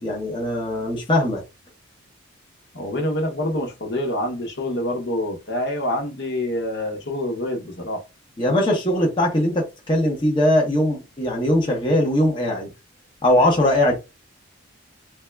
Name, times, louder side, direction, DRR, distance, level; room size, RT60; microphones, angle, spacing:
voice 1, 0.0-1.4 8.4-12.7 13.2-14.0, left 1 dB, 25° left, 0.8 m, -20 dB
voice 2, 2.7-8.0, left 1 dB, 55° left, 0.9 m, -26 dB
3.4 x 2.3 x 3.2 m
head